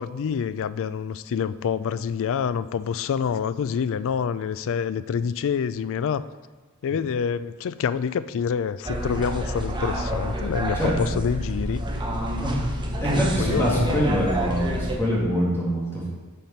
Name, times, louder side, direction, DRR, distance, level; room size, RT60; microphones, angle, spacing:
voice 1, 0.0-6.3 6.8-11.8 13.1-14.1, left 7 dB, 60° left, 15 dB, 0.3 m, -27 dB
sound 1, 8.9-15.0, right 1 dB, 20° right, 1.0 m, -28 dB
voice 2, 10.7-11.1 12.4-12.6 13.0-16.1, equal, 10° left, -6 dB, 2.4 m, -24 dB
7.4 x 5.8 x 5.5 m, 1.4 s
head